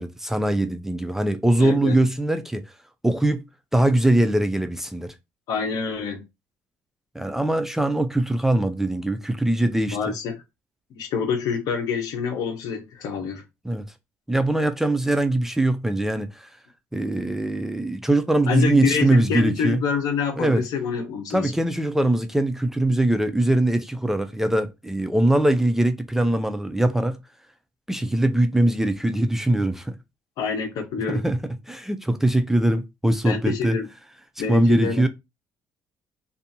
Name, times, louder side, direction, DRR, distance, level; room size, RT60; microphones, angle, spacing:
voice 1, 0.0-2.6 3.0-3.4 3.7-5.1 7.2-10.1 13.6-13.8 14.3-16.5 16.9-19.8 20.4-20.6 21.3-27.2 27.9-30.0 31.1-31.4 31.7-33.8 34.5-35.1, right 1 dB, 5° right, 0.3 m, -22 dB
voice 2, 1.6-2.0 5.5-6.2 9.9-10.4 10.9-13.4 18.5-21.5 30.4-31.3 33.2-33.9 34.4-35.0, left 6 dB, 75° left, 0.8 m, -26 dB
2.6 x 2.4 x 2.6 m
cardioid pair, 100°, 6 cm